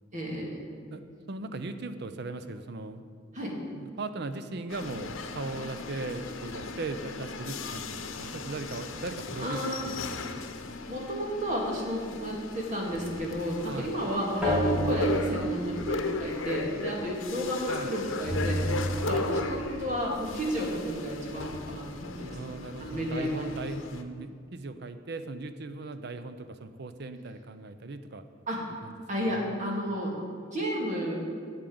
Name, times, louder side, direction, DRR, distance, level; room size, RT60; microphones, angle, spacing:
voice 1, 0.1-0.5 3.3-3.5 9.4-9.9 10.9-18.6 19.0-23.5 28.5-28.6 29.1-30.2 30.4-31.2, equal, 40° right, -2 dB, 2.1 m, -32 dB
voice 2, 0.9-3.0 3.7-10.8 13.6-14.0 17.7-17.9 19.0-19.3 22.3-28.2 28.8-28.9 29.3-29.5, right 3 dB, 55° right, 10 dB, 0.6 m, -39 dB
sound 1, 4.7-24.0, left 3 dB, 90° left, 0.9 m, -37 dB
sound 2, 12.9-17.7 18.2-21.5, right 1 dB, 5° right, 2.7 m, -32 dB
8.7 x 8.2 x 7.7 m, 2.2 s
head